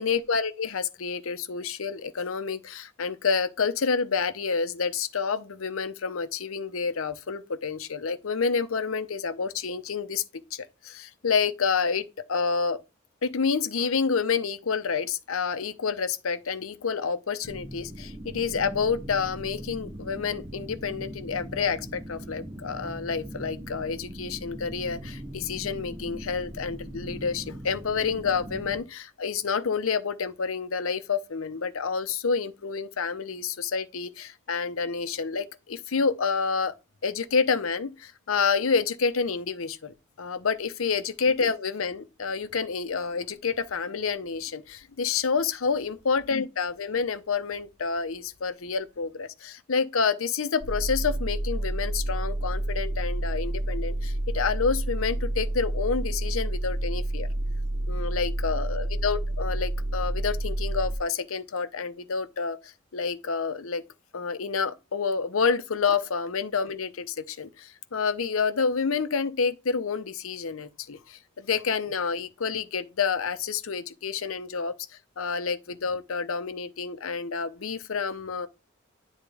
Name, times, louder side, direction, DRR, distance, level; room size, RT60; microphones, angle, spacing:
voice 1, 0.0-10.2 10.5-12.8 13.2-36.7 37.0-57.3 57.9-63.8 64.1-74.7 75.2-78.5, left 5 dB, 85° left, 0.7 m, -29 dB
sound 1, 17.4-28.8, equal, 25° right, 1.5 m, -40 dB
sound 2, 50.6-61.0, right 1 dB, 65° right, 0.9 m, -29 dB
9.9 x 3.6 x 3.4 m
head